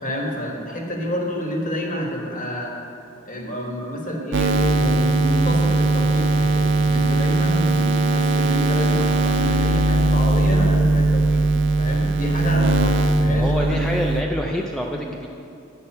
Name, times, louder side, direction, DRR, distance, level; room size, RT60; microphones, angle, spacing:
voice 1, 0.0-2.7 3.2-11.5 11.8-13.8, equal, 40° left, -1 dB, 1.4 m, -28 dB
sound 1, 4.3-14.2, right 2 dB, 60° right, 0.5 m, -19 dB
voice 2, 13.2-15.3, equal, 5° left, 0 dB, 0.3 m, -26 dB
9.6 x 6.0 x 5.4 m, 2.6 s
head